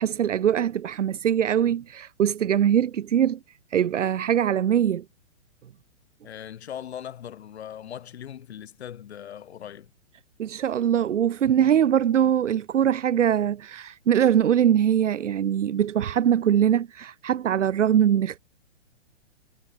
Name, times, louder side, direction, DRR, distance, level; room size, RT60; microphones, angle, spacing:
voice 1, 0.0-3.4 3.7-5.0 10.4-18.4, right 9 dB, 85° right, 0.6 m, -22 dB
voice 2, 6.2-9.9, left 10 dB, 65° left, 1.4 m, -39 dB
hypercardioid pair, 130°, 35 cm